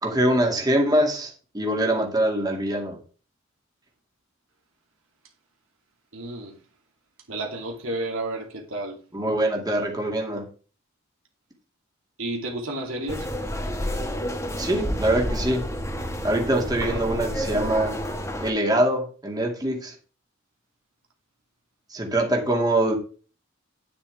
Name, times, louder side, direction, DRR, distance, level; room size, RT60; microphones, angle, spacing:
voice 1, 0.0-3.0 9.1-10.4 14.6-15.6 16.2-17.9 18.4-19.9 21.9-23.0, right 1 dB, 20° right, 2.4 m, -23 dB
voice 2, 6.1-6.6 7.3-9.0 12.2-13.3, right 1 dB, 85° right, 2.8 m, -31 dB
sound 1, 13.1-18.5, equal, 15° left, 1.8 m, -30 dB
9.9 x 9.8 x 3.5 m
head